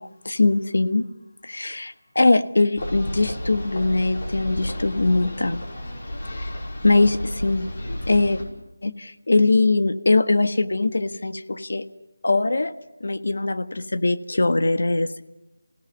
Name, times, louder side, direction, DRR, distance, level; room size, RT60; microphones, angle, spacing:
voice 1, 0.2-1.1 1.4-5.6 6.4-6.5 6.8-7.7 8.0-8.4 8.8-11.8 12.2-12.7 13.0-15.2, left 2 dB, 65° left, 10 dB, 1.4 m, -21 dB
sound 1, 2.8-8.4, equal, 45° left, 5.6 m, -32 dB
27.5 x 17.5 x 7.3 m, 0.97 s
figure-of-eight pair, 175°, 0 cm